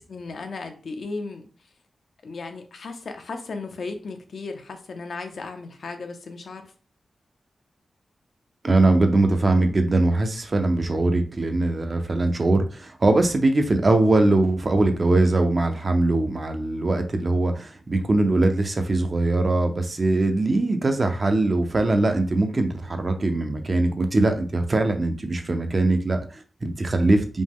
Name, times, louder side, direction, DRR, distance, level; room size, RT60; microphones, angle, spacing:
voice 1, 0.1-1.4 2.2-6.6, left 3 dB, 65° left, 6 dB, 0.6 m, -35 dB
voice 2, 8.6-27.4, right 2 dB, 35° right, 6 dB, 0.5 m, -21 dB
5.1 x 2.1 x 3.6 m, 0.38 s
wide cardioid pair, 160°, 0 cm